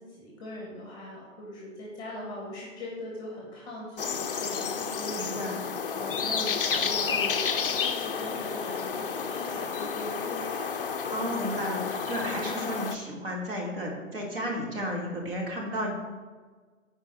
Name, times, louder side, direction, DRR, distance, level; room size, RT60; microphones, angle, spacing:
voice 1, 0.0-10.8 11.2-11.4, left 1 dB, 10° left, -3 dB, 1.3 m, -40 dB
sound 1, 4.0-13.0, left 6 dB, 45° left, 0.5 m, -31 dB
voice 2, 5.1-5.6 11.1-15.9, equal, 45° right, -1 dB, 1.9 m, -33 dB
10.5 x 4.8 x 4.0 m, 1.4 s
figure-of-eight pair, 145°, 40 cm